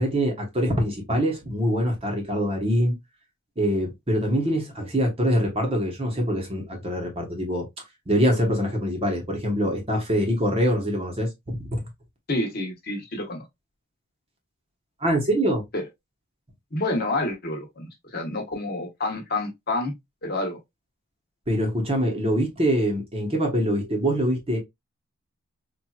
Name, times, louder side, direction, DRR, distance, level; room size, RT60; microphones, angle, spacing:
voice 1, 0.0-3.0 3.6-7.7 8.1-11.8 15.0-15.6 21.5-24.6, equal, 25° right, 1.0 m, -24 dB
voice 2, 12.3-13.4 15.7-15.8 16.7-19.9 20.2-20.6, left 2 dB, 45° left, 1.1 m, -28 dB
4.3 x 2.5 x 2.3 m
head